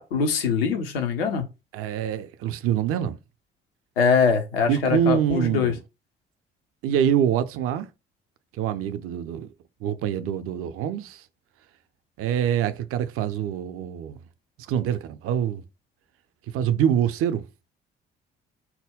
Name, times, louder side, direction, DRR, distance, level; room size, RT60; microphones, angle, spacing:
voice 1, 0.0-1.5 4.0-5.7, left 5 dB, 80° left, 0.6 m, -23 dB
voice 2, 1.7-3.2 4.7-5.8 6.8-7.9 8.6-9.5 9.8-11.2 12.2-14.2 14.7-15.6 16.5-17.4, right 9 dB, 50° right, 0.5 m, -25 dB
4.1 x 2.2 x 3.5 m
figure-of-eight pair, 45°, 30 cm